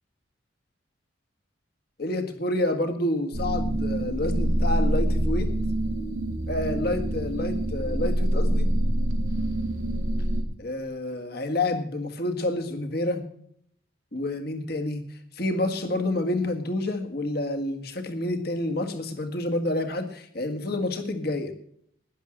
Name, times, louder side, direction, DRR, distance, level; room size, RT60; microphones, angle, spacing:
voice 1, 2.0-5.5 6.5-8.7 10.6-13.2 14.1-21.5, left 1 dB, 50° left, 6 dB, 1.7 m, -28 dB
sound 1, 3.3-10.4, right 1 dB, 90° right, 2.4 m, -25 dB
12.0 x 10.5 x 6.4 m, 0.66 s
head